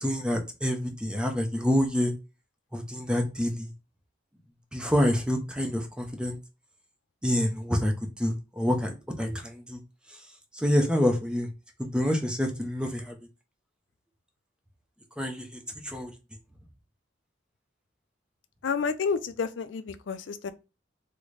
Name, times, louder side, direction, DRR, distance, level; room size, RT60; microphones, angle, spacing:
voice 1, 0.0-2.1 2.7-3.7 4.7-6.4 7.2-7.9 8.2-9.8 10.6-11.5 11.8-13.1 15.2-16.1, equal, 5° right, 0.6 m, -27 dB
voice 2, 18.6-20.5, left 5 dB, 70° left, 0.4 m, -30 dB
3.7 x 2.1 x 3.2 m
head